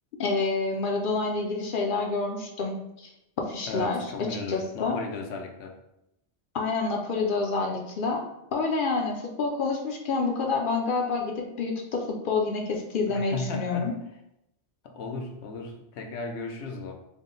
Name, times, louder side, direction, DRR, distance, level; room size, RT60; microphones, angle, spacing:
voice 1, 0.2-3.1 3.4-5.0 6.5-8.2 8.5-13.9, left 4 dB, 60° left, 1 dB, 0.6 m, -28 dB
voice 2, 3.7-5.8 13.1-13.9 14.8-16.9, left 3 dB, 80° left, 3 dB, 0.9 m, -35 dB
3.6 x 2.1 x 3.7 m, 0.83 s
omnidirectional pair, 1.1 m